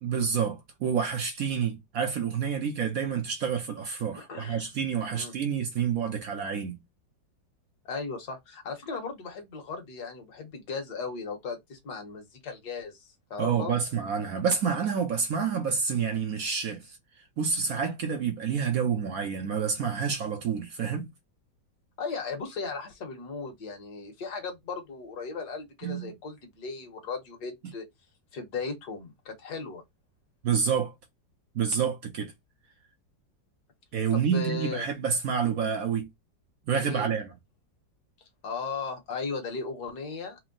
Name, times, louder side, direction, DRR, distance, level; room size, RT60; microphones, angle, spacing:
voice 1, 0.0-6.8 13.4-17.0 17.4-21.1 25.8-26.1 30.4-30.9 31.5-32.3 33.9-36.1 36.7-37.3, right 6 dB, 65° right, 0.9 m, -28 dB
voice 2, 4.1-4.7 5.1-5.3 7.8-13.7 22.0-27.8 28.3-29.8 34.1-34.9 36.8-37.1 38.4-40.4, left 4 dB, 60° left, 1.6 m, -37 dB
4.4 x 2.1 x 3.7 m
omnidirectional pair, 2.0 m